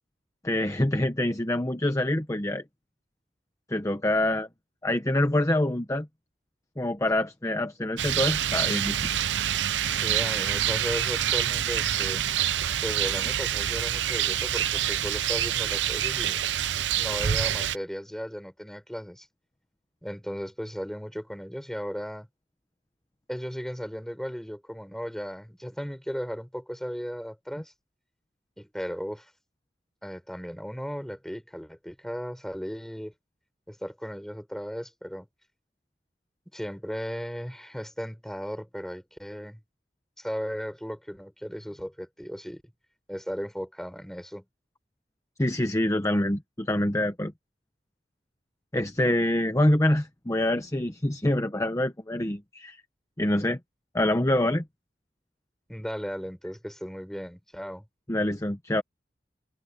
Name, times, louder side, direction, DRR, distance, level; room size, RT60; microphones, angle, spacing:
voice 1, 0.4-2.6 3.7-4.5 4.8-6.1 6.8-9.2 45.4-47.3 48.7-52.8 53.2-53.6 53.9-54.6 58.1-58.8, left 1 dB, 20° left, 1.1 m, -26 dB
Rain, 8.0-17.8, right 10 dB, 85° right, 0.6 m, -26 dB
voice 2, 9.9-12.2 12.5-16.4 17.0-19.3 20.0-22.3 23.3-27.7 28.6-29.3 30.0-33.1 33.7-35.3 36.5-39.6 40.2-42.6 43.1-44.4 55.7-57.8, equal, 5° left, 6.2 m, -36 dB
head